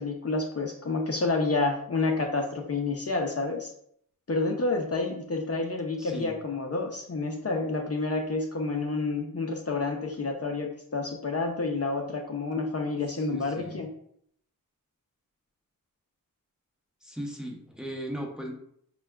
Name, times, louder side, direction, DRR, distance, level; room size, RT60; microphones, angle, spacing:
voice 1, 0.0-3.7 4.3-13.9, left 3 dB, 45° left, 2 dB, 0.6 m, -29 dB
voice 2, 6.0-6.3 13.3-13.8 17.0-18.5, equal, ahead, 0 dB, 0.8 m, -37 dB
5.9 x 2.2 x 2.2 m, 0.67 s
wide cardioid pair, 40°, 34 cm